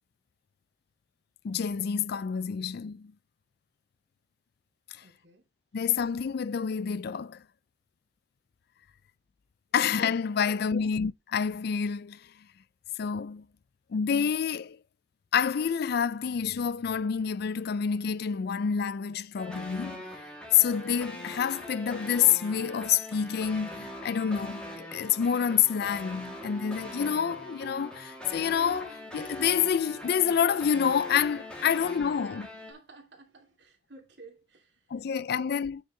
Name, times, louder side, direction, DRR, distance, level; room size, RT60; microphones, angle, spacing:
voice 1, 1.4-3.1 5.7-7.4 9.7-12.2 13.0-13.5 13.9-14.8 15.3-20.1 20.5-32.5 34.9-35.8, left 7 dB, 60° left, 0.4 m, -28 dB
voice 2, 5.0-5.4 10.5-10.9 32.7-35.5, right 3 dB, 70° right, 2.8 m, -54 dB
sound 1, 19.4-32.7, left 1 dB, 5° left, 2.6 m, -42 dB
9.0 x 6.5 x 3.2 m
head